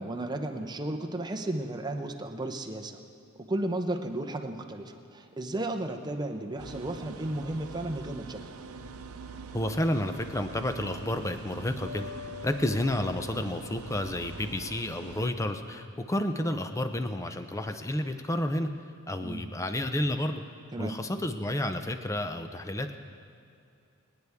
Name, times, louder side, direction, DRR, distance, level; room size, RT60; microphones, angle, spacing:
voice 1, 0.0-3.0 3.5-8.4 19.2-19.5 20.7-21.0, right 1 dB, 20° right, 3 dB, 0.8 m, -34 dB
sound 1, 6.6-15.3, right 4 dB, 80° right, 0.7 m, -44 dB
voice 2, 9.5-18.7 19.1-20.4 20.8-23.0, left 1 dB, 15° left, 8 dB, 0.6 m, -31 dB
sound 2, 11.8-14.6, left 6 dB, 80° left, 2.5 m, -46 dB
26.5 x 9.6 x 3.6 m, 2.5 s
head